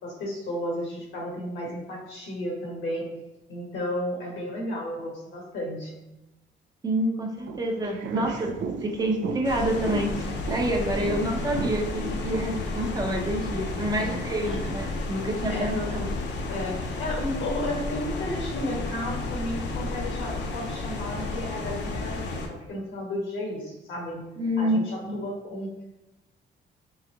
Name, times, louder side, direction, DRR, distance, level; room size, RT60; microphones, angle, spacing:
voice 1, 0.0-3.1 3.5-6.0 13.9-14.7 15.5-16.1 16.5-24.2 24.6-25.7, left 1 dB, 85° left, -1 dB, 1.3 m, -33 dB
voice 2, 6.8-8.5 8.8-16.0 24.4-25.2, right 1 dB, 20° right, 1 dB, 0.7 m, -28 dB
sound 1, 7.4-12.6, right 5 dB, 65° right, 0.5 m, -35 dB
sound 2, 9.4-22.5, left 2 dB, 65° left, 0.7 m, -32 dB
3.9 x 3.4 x 2.9 m, 0.98 s
cardioid pair, 90°, 20 cm